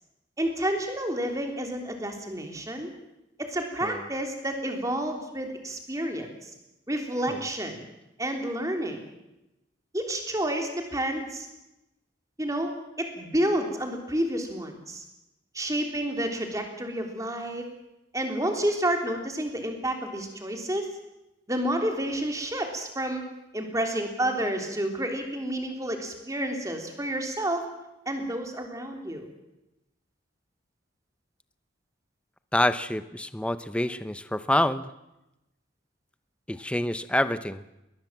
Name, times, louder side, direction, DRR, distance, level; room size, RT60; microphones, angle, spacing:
voice 1, 0.4-2.9 3.4-6.5 6.9-7.8 8.2-9.0 9.9-11.5 12.4-12.7 13.0-15.0 15.5-17.7 18.1-20.9 21.5-23.2 23.5-27.6 28.0-29.3, right 1 dB, 20° right, 4 dB, 3.4 m, -30 dB
voice 2, 32.5-34.9 36.5-37.6, left 1 dB, 5° left, 13 dB, 0.7 m, -27 dB
21.5 x 20.0 x 7.4 m, 0.92 s
head